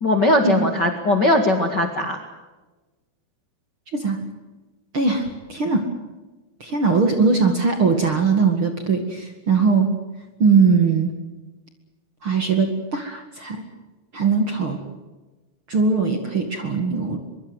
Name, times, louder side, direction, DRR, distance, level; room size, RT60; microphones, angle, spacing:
voice 1, 0.0-2.2, left 1 dB, 40° left, 4 dB, 1.7 m, -19 dB
voice 2, 3.9-4.2 4.9-5.9 6.6-9.9 10.4-11.1 12.2-13.6 14.1-14.8 15.7-17.2, right 4 dB, 40° right, 5 dB, 2.1 m, -20 dB
24.0 x 23.0 x 8.0 m, 1.2 s
omnidirectional pair, 4.8 m